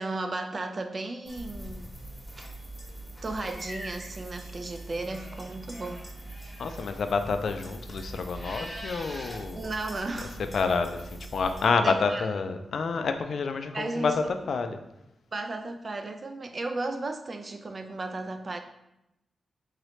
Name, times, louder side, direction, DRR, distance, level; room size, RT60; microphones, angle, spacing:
voice 1, 0.0-1.9 2.4-2.5 3.2-6.0 6.4-6.6 9.6-10.4 11.8-12.2 13.7-14.3 15.3-18.6, right 2 dB, 40° right, 6 dB, 0.4 m, -34 dB
sound 1, 1.3-11.7, right 1 dB, 15° left, 1.0 m, -42 dB
voice 2, 6.6-9.7 10.4-14.8, left 4 dB, 70° left, 8 dB, 0.3 m, -28 dB
3.7 x 3.1 x 3.1 m, 0.87 s
wide cardioid pair, 100°, 0 cm